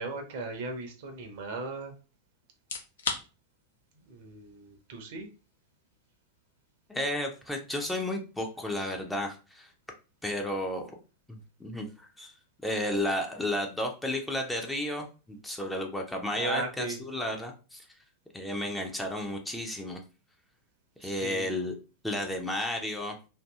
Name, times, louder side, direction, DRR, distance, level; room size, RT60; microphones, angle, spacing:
voice 1, 0.0-1.9 4.0-5.3 16.3-17.0 21.0-21.5, right 3 dB, 50° right, 4 dB, 0.6 m, -37 dB
sound 1, 2.5-17.4, left 5 dB, 65° left, 0.5 m, -47 dB
voice 2, 6.9-9.7 10.2-11.0 11.3-12.3 12.6-17.9 18.3-20.0 21.0-21.8 22.0-23.2, left 1 dB, 5° left, 2 dB, 0.5 m, -32 dB
2.6 x 2.6 x 2.2 m, 0.33 s
figure-of-eight pair, 90°, 0 cm